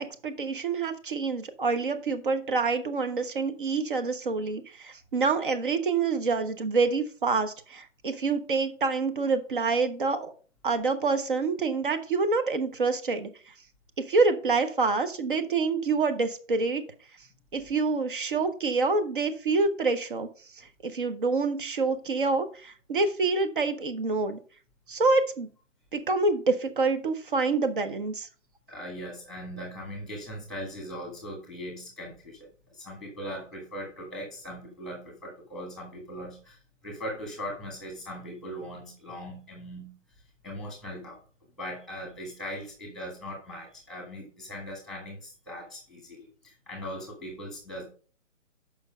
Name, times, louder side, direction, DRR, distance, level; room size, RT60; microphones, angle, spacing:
voice 1, 0.0-10.3 10.6-13.3 14.0-16.8 17.5-20.3 20.8-24.4 24.9-25.5 25.9-28.3, right 4 dB, 40° right, 9 dB, 1.0 m, -27 dB
voice 2, 28.7-32.4 32.7-36.6 36.8-39.9 40.4-41.2 41.6-47.8, equal, ahead, 1 dB, 1.4 m, -39 dB
7.0 x 5.5 x 5.1 m, 0.40 s
hypercardioid pair, 160°, 38 cm